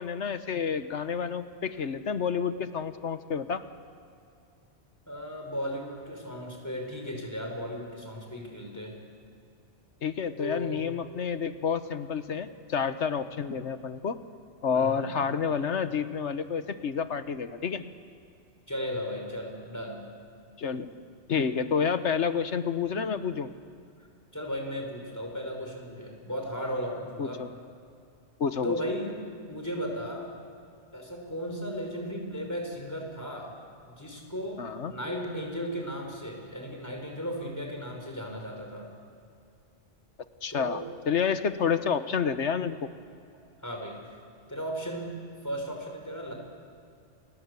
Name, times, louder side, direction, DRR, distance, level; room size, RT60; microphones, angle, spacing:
voice 1, 0.0-3.6 10.0-14.2 14.6-17.9 20.6-20.9 21.3-23.5 27.2-27.5 28.4-28.8 34.6-34.9 40.4-42.9, left 6 dB, 70° left, 11 dB, 1.4 m, -29 dB
voice 2, 5.1-9.0 10.4-10.9 14.7-15.2 18.7-20.0 24.3-27.4 28.6-29.2 29.5-30.3 30.9-33.5 33.8-34.6 34.9-38.9 40.5-40.9 43.6-44.0 44.5-45.2 45.4-46.3, equal, 15° left, 1 dB, 5.5 m, -35 dB
29.5 x 24.0 x 8.3 m, 2.5 s
omnidirectional pair, 1.3 m